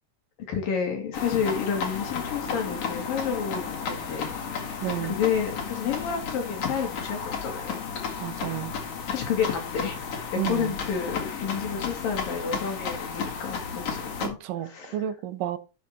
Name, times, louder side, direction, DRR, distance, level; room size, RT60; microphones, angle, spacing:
voice 1, 0.5-4.3 5.1-7.9 9.1-15.1, left 7 dB, 85° left, 4.5 m, -30 dB
sound 1, 1.1-14.3, left 6 dB, 55° left, 2.9 m, -33 dB
voice 2, 4.8-5.2 8.2-8.7 10.4-10.8 14.2-15.6, right 12 dB, 80° right, 2.6 m, -31 dB
12.0 x 5.2 x 4.4 m
omnidirectional pair, 3.9 m